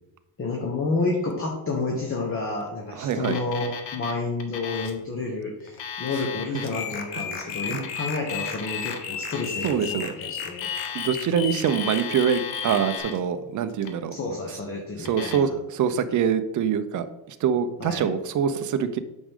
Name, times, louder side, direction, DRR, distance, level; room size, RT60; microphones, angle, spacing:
voice 1, 0.4-10.7 14.1-15.5 17.8-18.0, left 3 dB, 25° left, 0 dB, 1.2 m, -30 dB
voice 2, 2.9-3.4 6.5-6.6 7.1-7.9 9.6-10.1 10.9-14.1 15.0-19.0, right 7 dB, 40° right, 11 dB, 0.6 m, -25 dB
Alarm, 3.1-4.1 4.4-5.0 5.6-6.7 7.5-9.0 9.3-9.7 10.4-11.3 11.6-13.2 13.7-14.2 15.0-15.4, left 7 dB, 70° left, 1.3 m, -36 dB
sound 1, 6.7-13.0, left 7 dB, 90° left, 1.2 m, -34 dB
8.5 x 6.3 x 3.6 m, 0.99 s
cardioid pair, 135°, 49 cm